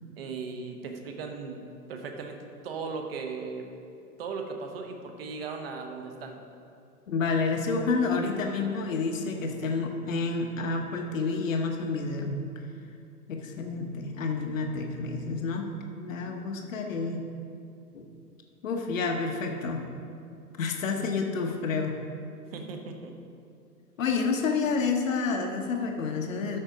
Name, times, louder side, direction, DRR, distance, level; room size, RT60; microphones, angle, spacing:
voice 1, 0.2-1.6 1.9-3.7 4.2-6.4 22.5-23.1, right 4 dB, 40° right, 4 dB, 1.0 m, -37 dB
voice 2, 7.1-12.4 13.3-15.7 15.9-17.2 17.9-18.0 18.6-19.8 20.6-21.9 24.0-26.6, left 4 dB, 55° left, 3 dB, 1.0 m, -29 dB
13.0 x 4.4 x 5.0 m, 2.5 s
figure-of-eight pair, 120°, 47 cm